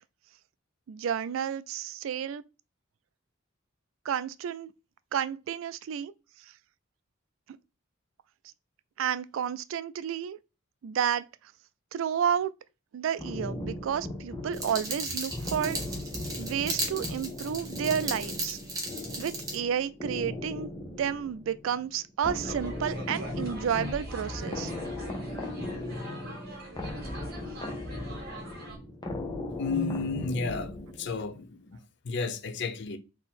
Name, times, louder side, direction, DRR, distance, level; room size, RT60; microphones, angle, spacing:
voice 1, 0.9-2.4 4.1-4.7 5.1-6.1 9.0-10.4 10.8-11.3 11.9-12.5 12.9-15.8 16.4-18.6 19.2-24.7, right 8 dB, 80° right, 0.3 m, -31 dB
sound 1, 13.2-31.3, left 1 dB, 20° left, 0.9 m, -37 dB
sound 2, 14.5-19.6, right 1 dB, 20° right, 1.3 m, -36 dB
sound 3, 22.3-28.8, right 1 dB, 55° right, 1.7 m, -44 dB
voice 2, 29.6-33.0, left 4 dB, 60° left, 0.6 m, -33 dB
3.8 x 2.8 x 4.1 m
head